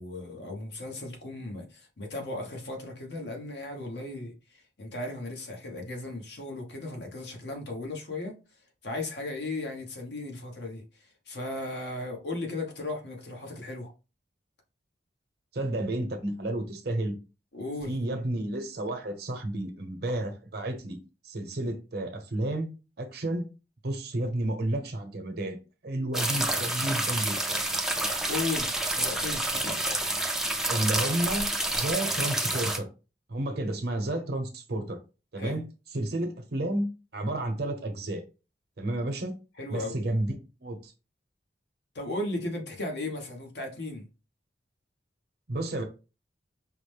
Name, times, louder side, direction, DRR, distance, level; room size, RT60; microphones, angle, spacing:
voice 1, 0.0-8.4 8.8-10.8 11.3-13.9 17.5-18.0 28.3-29.8 35.4-35.6 39.6-39.9 41.9-44.0, left 2 dB, 70° left, 1.1 m, -36 dB
voice 2, 15.5-17.1 17.9-21.0 21.2-22.7 23.0-23.5 23.8-25.6 25.8-27.6 30.7-31.5 31.7-32.8 33.3-35.0 35.3-35.6 35.9-38.2 38.8-39.3 39.7-40.9 45.5-45.8, right 1 dB, 60° right, 0.8 m, -31 dB
sound 1, 26.1-32.8, right 1 dB, 5° right, 0.4 m, -28 dB
4.9 x 2.1 x 3.3 m
head